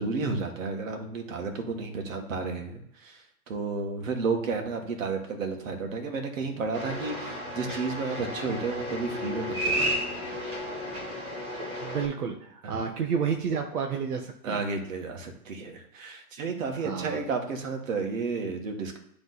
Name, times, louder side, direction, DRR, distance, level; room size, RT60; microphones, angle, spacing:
voice 1, 0.0-3.2 3.5-9.9 12.6-12.8 14.4-19.0, right 4 dB, 60° right, 3 dB, 1.9 m, -32 dB
sound 1, 6.7-12.0, equal, 20° right, 1.9 m, -32 dB
voice 2, 11.8-14.6 16.7-17.2, right 6 dB, 80° right, 2 dB, 1.3 m, -30 dB
10.0 x 3.8 x 4.1 m, 0.74 s
hypercardioid pair, 170°, 45 cm